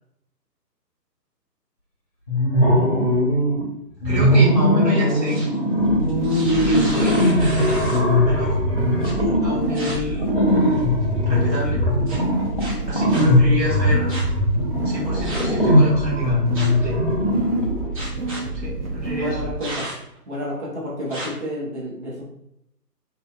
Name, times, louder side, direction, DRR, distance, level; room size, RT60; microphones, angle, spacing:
sound 1, 2.3-3.6 4.0-17.9, left 1 dB, 35° left, 0.5 m, -20 dB
voice 1, 4.0-5.4 6.6-7.2 8.1-8.6 9.2-10.4 11.3-11.8 12.9-14.1 14.8-16.4 16.8-17.0 18.5-19.4, left 1 dB, 90° right, -5 dB, 1.3 m, -28 dB
sound 2, 5.0-5.6 6.1-8.1 9.0-9.1 9.7-10.0 10.6-11.0 12.1-12.2 12.6-13.2 14.1-14.2 15.2-15.6 16.5-16.9 18.0-18.4 19.6-20.2 21.1-21.3, right 1 dB, 20° right, 1.2 m, -34 dB
sound 3, 5.8-19.5, right 2 dB, 60° right, 0.7 m, -29 dB
voice 2, 19.1-19.9 20.3-22.2, equal, 45° right, -5 dB, 1.1 m, -30 dB
2.8 x 2.6 x 2.3 m, 0.78 s
figure-of-eight pair, 145°, 49 cm